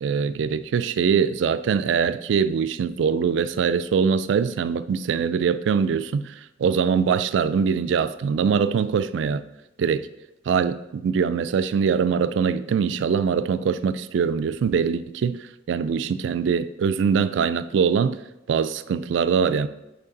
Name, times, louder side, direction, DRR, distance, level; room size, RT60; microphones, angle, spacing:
voice 1, 0.0-6.3 6.6-9.4 9.8-10.1 10.5-15.4 15.7-18.2 18.5-19.7, right 6 dB, 70° right, 0.3 m, -23 dB
8.3 x 3.2 x 3.9 m
head